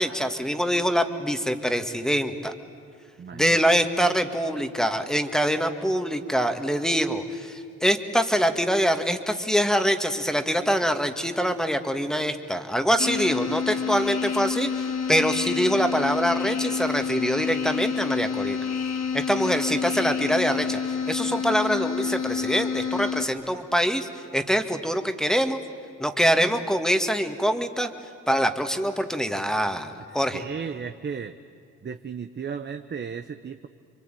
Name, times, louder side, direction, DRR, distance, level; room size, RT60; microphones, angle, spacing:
voice 1, 0.0-2.5 3.3-18.7 19.1-25.6 26.0-27.9 28.3-30.4, equal, ahead, 7 dB, 1.9 m, -24 dB
voice 2, 3.2-3.6 30.3-31.3 31.8-33.7, right 6 dB, 35° right, 7 dB, 0.9 m, -34 dB
sound 1, 13.0-23.2, left 6 dB, 60° left, 2.4 m, -28 dB
27.5 x 23.5 x 9.2 m, 2.4 s
cardioid pair, 90°, 30 cm